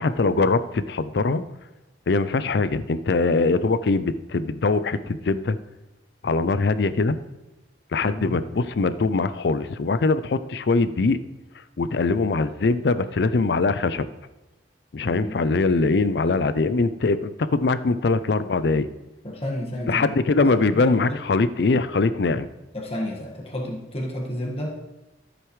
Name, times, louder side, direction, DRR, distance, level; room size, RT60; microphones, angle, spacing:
voice 1, 0.0-1.4 2.1-5.6 6.2-7.2 7.9-11.2 11.8-14.1 14.9-18.9 19.9-22.5, left 3 dB, 65° left, 14 dB, 0.5 m, -22 dB
voice 2, 19.2-21.2 22.7-24.7, left 1 dB, 35° left, -2 dB, 1.7 m, -31 dB
13.5 x 8.0 x 3.2 m, 1.0 s
head